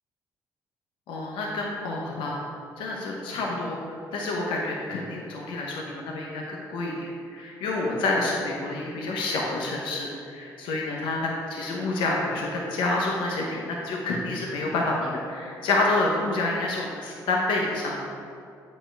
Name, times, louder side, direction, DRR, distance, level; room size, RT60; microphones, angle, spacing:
voice 1, 1.1-2.3 2.8-18.0, left 2 dB, 80° left, -2 dB, 0.9 m, -28 dB
8.1 x 4.3 x 4.6 m, 2.5 s
cardioid pair, 75°, 8 cm